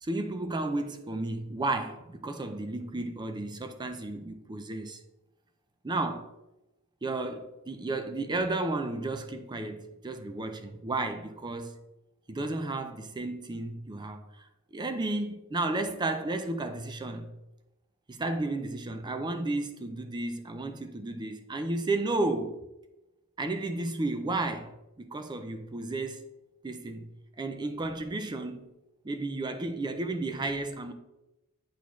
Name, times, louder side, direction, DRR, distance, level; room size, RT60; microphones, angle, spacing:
voice 1, 0.0-5.0 5.8-6.3 7.0-11.8 12.3-17.3 18.1-22.6 23.4-24.7 25.0-26.2 26.6-27.1 27.4-28.7 29.0-30.9, right 2 dB, 20° right, 0.5 m, -33 dB
8.3 x 4.1 x 3.1 m
head